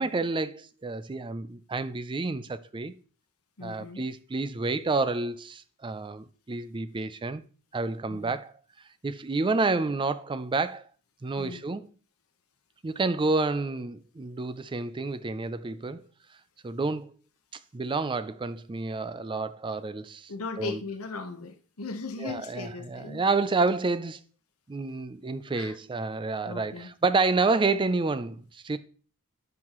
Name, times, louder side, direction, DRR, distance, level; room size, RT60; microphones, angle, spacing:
voice 1, 0.0-2.9 3.6-7.4 7.7-8.5 9.0-10.8 11.2-11.9 12.8-16.0 16.6-17.1 17.7-20.3 20.6-20.8 22.2-24.2 24.7-28.8, right 3 dB, 20° right, 0.4 m, -29 dB
voice 2, 3.6-4.1 8.1-8.3 11.4-11.6 20.3-23.2 25.5-25.8 26.4-26.9, left 3 dB, 70° left, 1.2 m, -38 dB
11.0 x 5.6 x 3.0 m
head